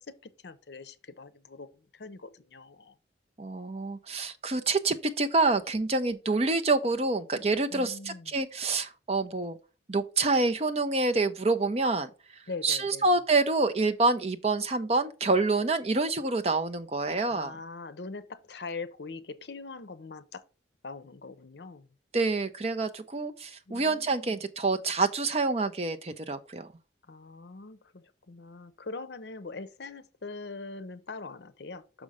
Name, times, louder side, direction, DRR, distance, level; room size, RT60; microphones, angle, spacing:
voice 1, 0.1-2.9 7.7-8.4 12.5-13.1 17.3-20.4 20.8-21.9 23.7-24.4 27.1-32.0, left 3 dB, 65° left, 0.7 m, -42 dB
voice 2, 3.4-9.6 9.9-12.1 12.6-17.6 22.1-26.7, right 3 dB, 35° right, 0.6 m, -27 dB
6.1 x 5.3 x 4.8 m
head